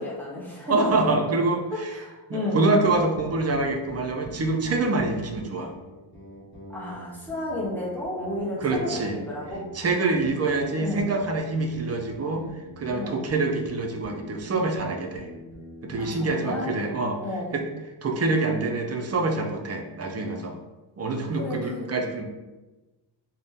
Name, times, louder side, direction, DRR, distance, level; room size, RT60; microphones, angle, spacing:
voice 1, 0.0-0.9 1.9-2.7 6.7-9.6 10.8-11.1 12.9-13.2 16.0-16.7 17.2-17.6 21.3-22.0, left 1 dB, 5° left, -6 dB, 0.9 m, -32 dB
voice 2, 0.7-1.9 2.3-5.7 8.6-9.2 9.7-12.5 12.8-15.3 15.8-17.2 17.5-17.6 18.0-20.6 21.0-22.2, right 3 dB, 35° right, 2 dB, 0.4 m, -26 dB
sound 1, 2.9-16.4, right 1 dB, 25° left, 1.3 m, -44 dB
3.9 x 2.1 x 3.5 m, 1.1 s
wide cardioid pair, 140°, 44 cm